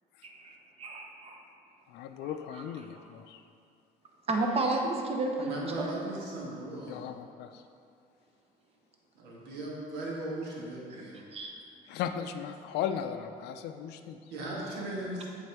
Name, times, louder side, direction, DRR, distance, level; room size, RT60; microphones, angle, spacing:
voice 1, 0.2-0.5 0.8-1.4 4.3-5.9 11.3-11.5, right 2 dB, 35° right, 2 dB, 0.8 m, -31 dB
voice 2, 1.9-3.4 6.9-7.6 11.9-14.3, left 8 dB, 80° left, 8 dB, 0.4 m, -37 dB
voice 3, 5.4-7.0 9.1-11.2 14.3-15.3, right 1 dB, 90° right, -4 dB, 1.5 m, -37 dB
8.0 x 4.1 x 3.5 m, 2.5 s
cardioid pair, 110°, 17 cm